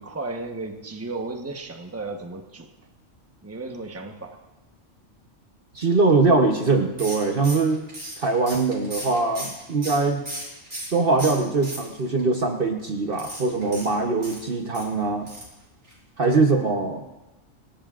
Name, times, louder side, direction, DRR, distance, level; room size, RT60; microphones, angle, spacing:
voice 1, 0.0-2.7 3.4-4.4, right 3 dB, 10° right, 3 dB, 1.1 m, -34 dB
voice 2, 5.7-7.8 8.2-10.2 10.9-15.3 16.2-17.0, right 3 dB, 45° right, 3 dB, 1.1 m, -22 dB
sound 1, 7.0-10.9 11.2-12.2 13.1-14.9 15.3-15.6 15.8-15.9 16.2-16.3, right 1 dB, 65° right, 6.1 m, -36 dB
28.5 x 13.5 x 2.5 m, 1.0 s
omnidirectional pair, 1.4 m